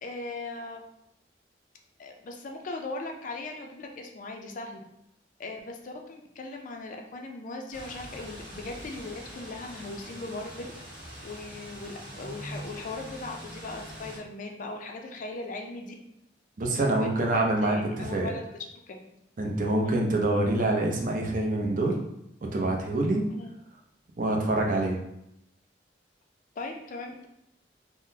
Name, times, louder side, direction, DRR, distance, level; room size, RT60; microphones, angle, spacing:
voice 1, 0.0-0.8 2.0-4.8 5.4-10.7 11.2-15.9 17.0-18.4 18.9-19.0 19.7-20.0 23.3-23.5 26.6-27.3, left 3 dB, 45° left, 2 dB, 0.4 m, -38 dB
sound 1, 7.7-14.2, equal, 25° right, 1.1 m, -43 dB
voice 2, 16.6-17.8 18.1-18.3 19.4-22.0 22.5-23.2 24.2-25.0, right 2 dB, 50° right, 0 dB, 0.5 m, -25 dB
3.7 x 2.0 x 2.7 m, 0.81 s
head